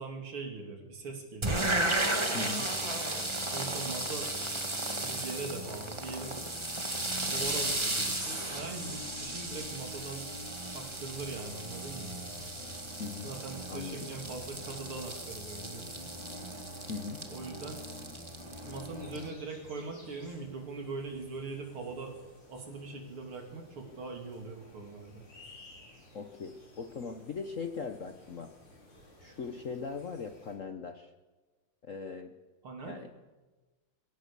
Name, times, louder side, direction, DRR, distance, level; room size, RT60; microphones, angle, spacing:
voice 1, 0.0-1.7 2.3-2.6 3.5-4.3 5.0-6.4 7.1-10.3 10.7-12.1 13.2-16.1 17.3-17.8 18.6-22.2 22.5-25.3 32.6-33.0, right 4 dB, 75° right, 3 dB, 3.7 m, -41 dB
sound 1, 1.4-19.3, right 1 dB, 15° right, 1.8 m, -35 dB
voice 2, 2.3-2.7 13.0-13.3 13.7-14.1 16.9-17.3 26.1-28.5 29.2-31.1 31.8-32.3 32.8-33.1, left 5 dB, 50° left, 7 dB, 1.0 m, -39 dB
sound 2, 11.0-30.5, left 1 dB, 75° left, 5.9 m, -56 dB
23.5 x 16.5 x 6.9 m, 1.2 s
omnidirectional pair, 2.4 m